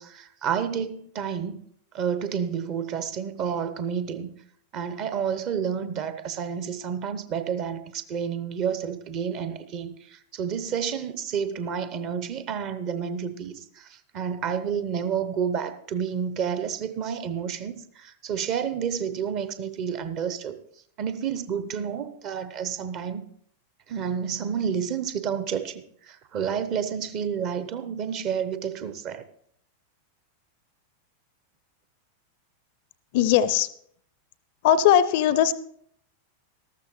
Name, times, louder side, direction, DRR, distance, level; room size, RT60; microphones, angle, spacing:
voice 1, 0.0-1.6 1.9-4.3 4.7-20.6 21.0-23.3 23.9-29.2, right 7 dB, 40° right, 0.8 m, -30 dB
voice 2, 33.1-33.7 34.6-35.5, left 10 dB, 50° left, 0.5 m, -19 dB
13.5 x 12.5 x 3.1 m
figure-of-eight pair, 90°, 0 cm